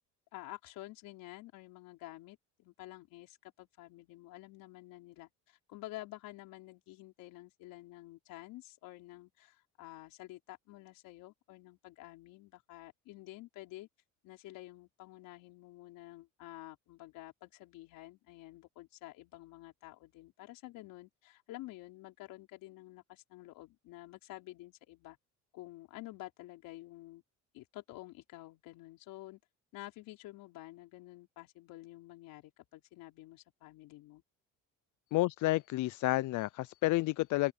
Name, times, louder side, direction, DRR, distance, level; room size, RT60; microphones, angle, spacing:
voice 1, 0.3-13.9 14.2-25.2 25.5-27.2 27.5-29.4 29.7-34.2, left 17 dB, 80° left, 4.7 m, -50 dB
voice 2, 35.1-37.5, left 18 dB, 60° left, 0.5 m, -30 dB
open air
cardioid pair, 105°, 33 cm